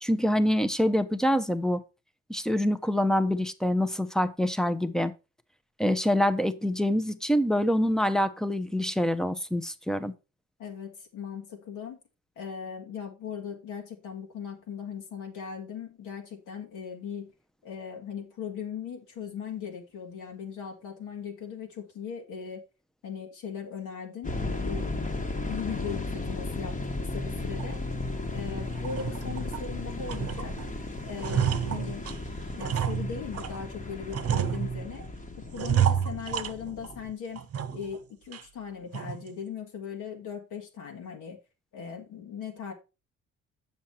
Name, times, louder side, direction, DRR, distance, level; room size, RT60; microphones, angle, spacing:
voice 1, 0.0-1.8 2.3-5.1 5.8-10.1, equal, ahead, 0.7 m, -25 dB
voice 2, 10.6-12.0 12.4-17.3 17.6-22.6 23.0-25.2 25.5-26.7 27.1-27.8 28.3-30.5 31.0-32.1 32.5-35.0 35.5-37.4 37.7-41.4 41.7-42.7, left 7 dB, 85° left, 1.9 m, -39 dB
sound 1, 24.2-37.1, left 2 dB, 25° left, 1.3 m, -35 dB
sound 2, 27.6-27.7 28.2-28.3 28.8-29.7 30.1-30.7 31.0-33.6 34.1-35.1 35.5-37.0 37.3-38.0 38.3-38.4 38.9-39.3, right 9 dB, 50° right, 0.8 m, -30 dB
7.2 x 5.9 x 4.2 m
cardioid pair, 90°, 30 cm